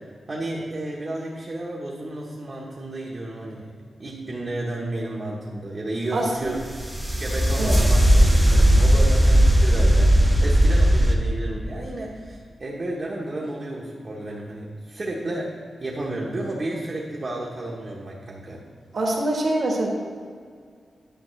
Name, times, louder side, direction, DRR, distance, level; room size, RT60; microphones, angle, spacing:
voice 1, 0.3-3.7 4.0-6.9 7.2-15.5 15.8-18.6, right 1 dB, 35° right, -3 dB, 0.9 m, -32 dB
voice 2, 6.1-6.5 7.6-7.8 18.9-19.9, right 1 dB, 55° right, 0 dB, 1.3 m, -24 dB
sound 1, 6.6-11.2, right 1 dB, ahead, 0.8 m, -17 dB
10.0 x 7.0 x 3.2 m, 2.1 s
wide cardioid pair, 150°, 0 cm